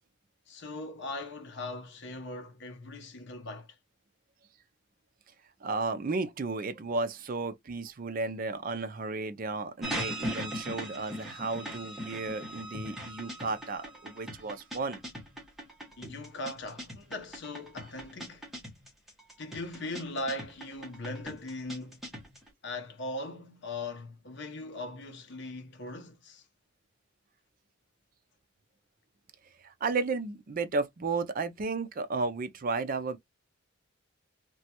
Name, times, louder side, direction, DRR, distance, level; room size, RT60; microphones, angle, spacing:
voice 1, 0.5-3.7 16.0-18.5 19.4-22.0 22.6-26.4, left 2 dB, 55° left, 0.7 m, -39 dB
voice 2, 5.6-15.0 29.6-33.2, right 3 dB, 40° right, 0.4 m, -33 dB
sound 1, 9.8-22.5, equal, ahead, 0.9 m, -40 dB
2.9 x 2.3 x 2.8 m
head